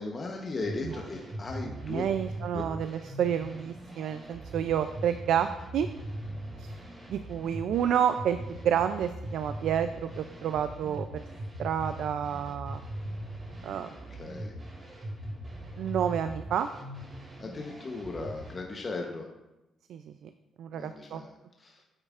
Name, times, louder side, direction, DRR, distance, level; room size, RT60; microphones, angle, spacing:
voice 1, 0.0-2.0 2.5-2.6 14.1-14.5 17.4-19.3 20.7-21.8, left 3 dB, 35° left, 1 dB, 0.9 m, -37 dB
sound 1, 0.6-18.5, right 1 dB, 35° right, 2.4 m, -41 dB
voice 2, 1.6-5.5 5.7-5.9 6.6-6.7 7.1-8.4 8.6-11.2 11.6-12.8 13.6-13.9 15.8-16.7 19.9-20.3 20.6-21.2, right 9 dB, 75° right, 10 dB, 0.3 m, -29 dB
8.8 x 7.9 x 2.5 m, 0.97 s
cardioid pair, 90°, 0 cm